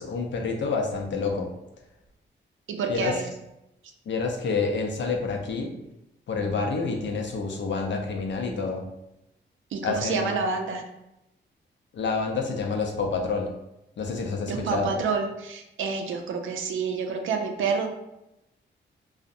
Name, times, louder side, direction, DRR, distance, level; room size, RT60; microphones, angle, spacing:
voice 1, 0.0-1.5 2.9-3.2 4.1-5.7 6.3-8.9 9.8-10.3 11.9-13.5 14.0-14.9, left 4 dB, 65° left, 2 dB, 0.5 m, -28 dB
voice 2, 2.7-3.2 9.7-10.8 14.5-17.9, right 5 dB, 80° right, 4 dB, 0.4 m, -28 dB
2.6 x 2.0 x 2.5 m, 0.89 s
cardioid pair, 70°, 20 cm